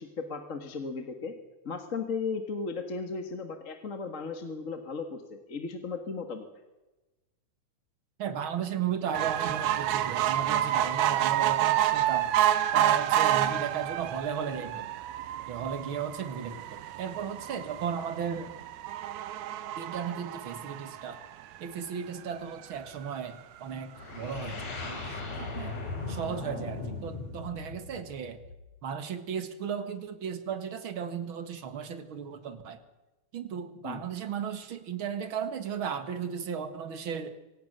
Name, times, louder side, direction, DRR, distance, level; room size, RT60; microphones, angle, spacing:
voice 1, 0.0-1.3 1.6-6.5 33.8-34.0, left 4 dB, 35° left, 6 dB, 1.6 m, -36 dB
voice 2, 8.2-12.3 12.7-14.9 15.5-18.5 19.8-21.2 21.6-25.8 26.1-28.4 28.8-32.8 33.3-37.4, right 7 dB, 50° right, 10 dB, 2.2 m, -35 dB
sound 1, 9.1-21.7 22.3-22.4 22.7-22.8 23.0-23.1, right 12 dB, 85° right, 2.4 m, -29 dB
sound 2, 23.9-28.8, left 3 dB, 65° left, 5.4 m, -38 dB
25.0 x 17.5 x 6.8 m, 1.1 s
omnidirectional pair, 3.3 m